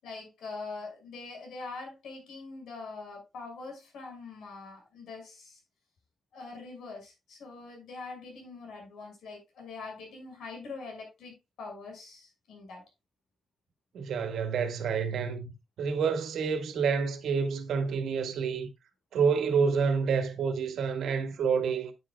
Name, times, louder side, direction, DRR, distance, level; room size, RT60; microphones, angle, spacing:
voice 1, 0.0-5.6 6.3-12.8, left 3 dB, 85° left, 6.0 m, -43 dB
voice 2, 13.9-15.5 15.8-18.7 19.1-21.9, right 6 dB, 80° right, 1.8 m, -28 dB
10.0 x 9.3 x 2.4 m
wide cardioid pair, 145°, 0 cm